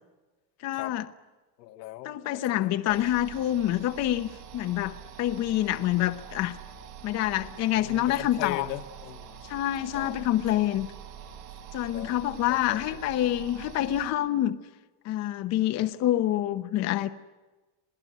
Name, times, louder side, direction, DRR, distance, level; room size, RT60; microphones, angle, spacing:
voice 1, 0.6-1.0 2.0-6.6 7.0-8.7 9.4-10.9 11.7-14.6 15.0-17.1, left 13 dB, 35° left, 9 dB, 0.9 m, -27 dB
voice 2, 1.6-3.1 7.7-9.4 9.9-10.2 10.5-10.6 11.9-12.2 12.5-13.0, left 14 dB, 85° left, 5 dB, 1.9 m, -40 dB
sound 1, 2.9-14.1, right 8 dB, 80° right, 6.2 m, -45 dB
27.5 x 17.5 x 9.3 m, 1.2 s
supercardioid pair, 160°, 48 cm